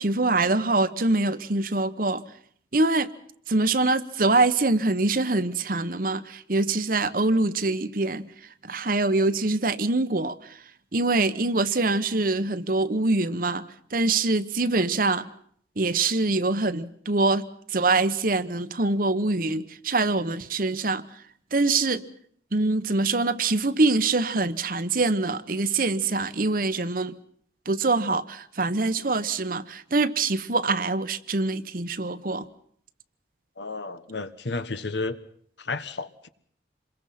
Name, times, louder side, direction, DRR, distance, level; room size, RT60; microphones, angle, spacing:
voice 1, 0.0-2.2 2.7-3.1 3.5-8.3 8.6-10.3 10.9-13.6 13.9-15.2 15.8-17.4 17.7-21.0 21.5-22.0 22.5-27.1 27.7-32.5, right 3 dB, 50° right, 1.1 m, -24 dB
voice 2, 33.6-35.2 35.6-36.3, left 3 dB, 85° left, 1.4 m, -32 dB
27.5 x 22.5 x 5.9 m
head